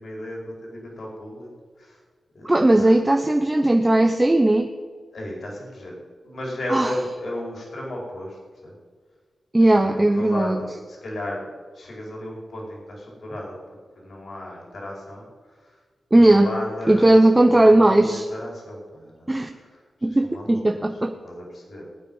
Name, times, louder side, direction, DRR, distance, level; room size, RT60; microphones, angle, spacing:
voice 1, 0.0-1.5 1.8-2.0 2.3-3.0 5.1-5.9 6.2-8.7 9.6-11.5 11.7-13.6 13.9-15.8 16.1-21.8, left 1 dB, 60° left, -1 dB, 4.6 m, -35 dB
voice 2, 2.4-4.7 6.7-6.9 9.5-10.6 16.1-16.5 16.9-18.2 19.3-19.5 20.0-21.1, right 1 dB, 15° right, 5 dB, 0.8 m, -17 dB
19.5 x 9.2 x 5.5 m, 1.5 s
wide cardioid pair, 100°, 0 cm